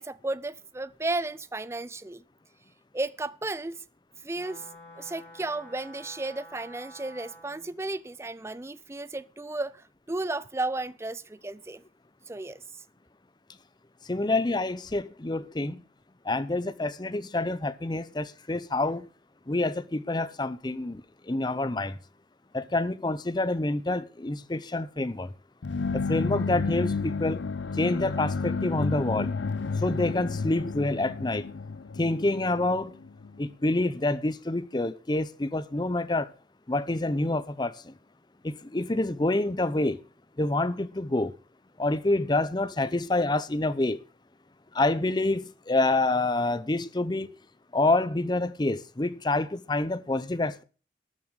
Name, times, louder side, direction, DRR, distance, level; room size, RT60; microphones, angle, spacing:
voice 1, 0.0-2.2 2.9-3.8 4.2-4.7 5.0-11.8 12.3-12.8, right 2 dB, 15° right, 0.5 m, -34 dB
Wind instrument woodwind instrument, 4.3-7.7, equal, 10° left, 3.4 m, -49 dB
voice 2, 14.0-15.8 16.2-19.1 19.5-22.0 22.5-25.3 25.9-27.4 27.7-29.3 29.7-31.5 31.9-32.9 33.4-36.3 36.7-38.0 38.4-40.0 40.4-41.4 41.8-44.0 44.7-47.3 47.7-50.6, left 2 dB, 25° left, 0.6 m, -27 dB
sound 1, 25.6-33.4, left 4 dB, 85° left, 0.6 m, -31 dB
13.0 x 7.1 x 6.5 m
head